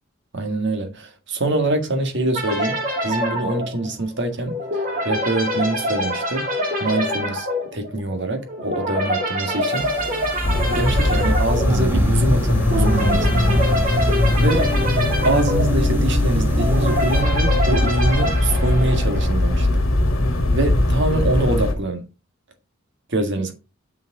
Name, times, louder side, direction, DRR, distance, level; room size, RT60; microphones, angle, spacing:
voice 1, 0.3-4.5 5.1-6.5 6.8-7.5 7.7-9.9 10.7-13.6 14.4-14.8 15.2-19.7 20.5-22.0 23.1-23.5, right 2 dB, 60° right, 1.7 m, -24 dB
sound 1, 2.3-19.5, equal, 45° right, 3.0 m, -26 dB
sound 2, 9.8-17.2, left 1 dB, 10° right, 1.2 m, -25 dB
sound 3, 10.4-21.7, left 1 dB, 75° left, 1.8 m, -20 dB
7.0 x 6.2 x 3.8 m
head